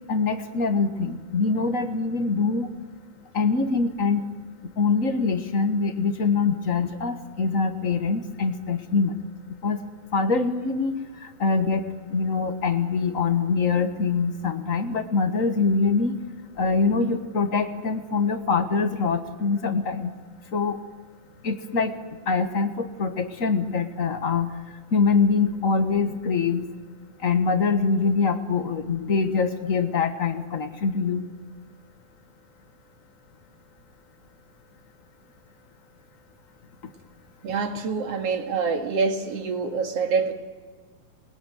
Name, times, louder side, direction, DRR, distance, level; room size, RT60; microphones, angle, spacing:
voice 1, 0.1-2.7 3.3-4.2 4.8-9.2 9.6-9.8 10.1-16.2 16.6-20.1 20.5-20.8 21.4-21.9 22.3-24.5 24.9-26.7 27.2-31.2, left 4 dB, 50° left, 7 dB, 0.9 m, -24 dB
voice 2, 37.4-40.3, right 5 dB, 55° right, 5 dB, 2.9 m, -26 dB
28.5 x 21.5 x 9.2 m, 1.5 s
omnidirectional pair, 3.6 m